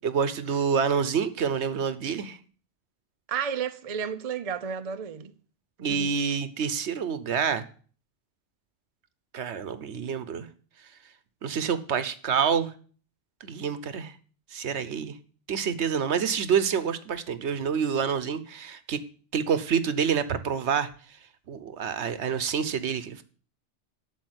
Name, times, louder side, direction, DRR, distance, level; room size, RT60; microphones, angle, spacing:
voice 1, 0.0-2.4 5.8-7.6 9.3-10.5 11.4-12.7 13.4-14.1 14.5-15.2 15.5-19.0 19.3-20.9 21.5-23.2, right 7 dB, 70° right, 1.2 m, -27 dB
voice 2, 3.3-5.3 5.8-6.1, right 7 dB, 40° right, 0.6 m, -32 dB
8.7 x 7.0 x 8.0 m
omnidirectional pair, 1.2 m